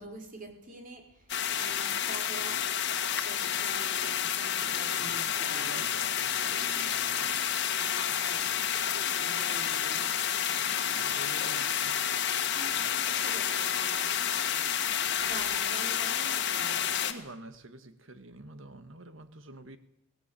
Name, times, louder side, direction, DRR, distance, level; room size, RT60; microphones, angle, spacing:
voice 1, 0.0-2.7 3.1-6.8 7.7-10.2 12.5-14.1 15.2-16.9, right 1 dB, 40° right, 4.5 m, -46 dB
sound 1, 1.3-17.1, left 9 dB, 55° left, 1.9 m, -30 dB
voice 2, 4.6-5.3 5.6-7.1 10.8-12.0 17.1-19.8, right 2 dB, 70° right, 2.0 m, -48 dB
23.5 x 18.0 x 8.7 m
head